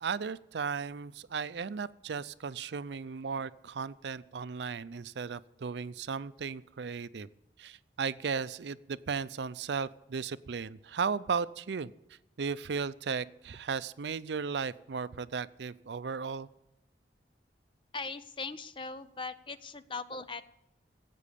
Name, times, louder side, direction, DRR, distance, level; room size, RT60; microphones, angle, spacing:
voice 1, 0.0-7.3 7.6-11.9 12.4-16.5, right 5 dB, 80° right, 16 dB, 0.5 m, -35 dB
voice 2, 17.9-20.4, left 4 dB, 30° left, 13 dB, 0.6 m, -39 dB
16.5 x 8.4 x 6.9 m, 0.92 s
head